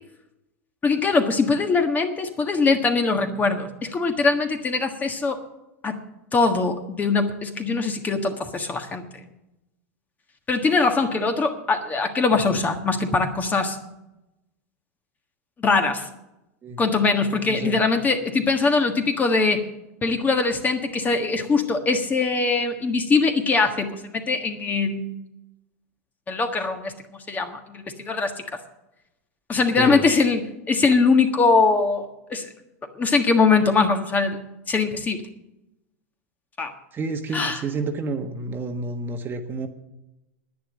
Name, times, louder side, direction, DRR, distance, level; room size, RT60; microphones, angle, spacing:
voice 1, 0.8-5.4 5.8-6.0 6.3-9.0 10.5-13.8 15.6-16.1 16.8-19.6 20.0-25.1 26.3-26.9 27.3-28.3 29.5-32.4 33.0-34.4 34.7-35.2 36.6-36.7 37.3-37.6, left 4 dB, 20° left, 6 dB, 1.5 m, -22 dB
voice 2, 17.5-17.8 29.8-30.1 36.9-39.7, right 3 dB, 25° right, 6 dB, 1.3 m, -29 dB
10.5 x 9.8 x 8.6 m, 0.92 s
supercardioid pair, 130°, 8 cm